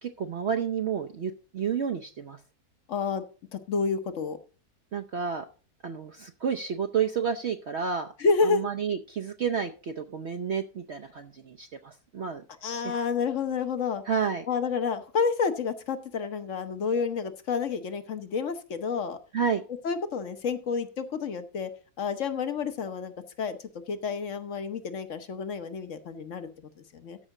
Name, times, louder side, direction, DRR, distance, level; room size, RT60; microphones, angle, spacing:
voice 1, 0.0-2.4 4.9-5.5 5.8-8.1 8.5-12.4 12.8-12.9 14.0-14.4 19.3-19.6, right 7 dB, 55° right, 6 dB, 0.8 m, -30 dB
voice 2, 2.9-3.2 3.5-4.4 8.2-8.6 12.6-14.0 14.5-19.2 19.8-21.7 22.0-23.1 23.4-23.6 23.9-27.2, left 5 dB, 55° left, 9 dB, 1.3 m, -29 dB
13.5 x 5.5 x 4.8 m, 0.36 s
omnidirectional pair, 1.6 m